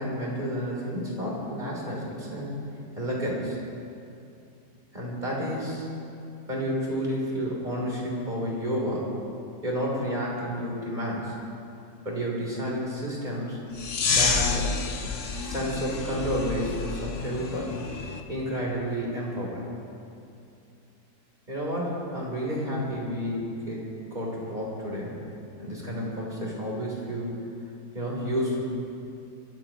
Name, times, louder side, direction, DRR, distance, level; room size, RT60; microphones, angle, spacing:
voice 1, 0.0-2.5 3.0-3.6 4.9-5.9 6.5-9.1 9.6-11.3 12.1-13.6 14.1-14.7 15.4-17.7 18.3-19.7 21.5-23.4 23.7-23.9 24.1-25.1 25.6-27.3 27.9-28.6, equal, 25° right, -4 dB, 3.6 m, -30 dB
sound 1, 13.8-18.2, left 4 dB, 50° left, 1.2 m, -29 dB
24.5 x 13.5 x 3.0 m, 2.6 s
omnidirectional pair, 1.8 m